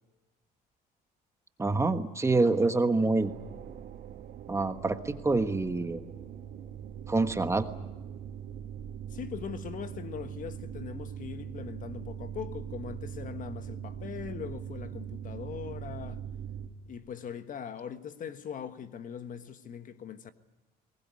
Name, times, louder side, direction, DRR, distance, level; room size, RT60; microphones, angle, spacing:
voice 1, 1.6-3.3 4.5-6.0 7.1-7.7, right 3 dB, 15° right, 1.4 m, -26 dB
sound 1, 3.2-16.7, right 9 dB, 80° right, 2.6 m, -41 dB
voice 2, 9.1-16.3 16.9-20.3, left 8 dB, 50° left, 1.4 m, -41 dB
22.0 x 19.5 x 9.6 m
cardioid pair, 110°, 17 cm